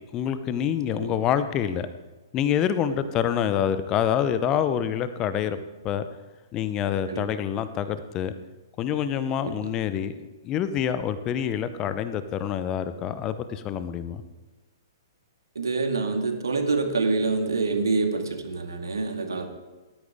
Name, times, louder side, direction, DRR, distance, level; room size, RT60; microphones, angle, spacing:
voice 1, 0.1-1.9 2.3-5.6 5.8-6.0 6.5-8.3 8.8-10.2 10.4-14.2, left 9 dB, 25° left, 12 dB, 0.8 m, -26 dB
voice 2, 15.6-19.5, right 3 dB, 70° right, 4 dB, 2.3 m, -26 dB
18.5 x 13.0 x 3.7 m, 1.2 s
figure-of-eight pair, 115°, 2 cm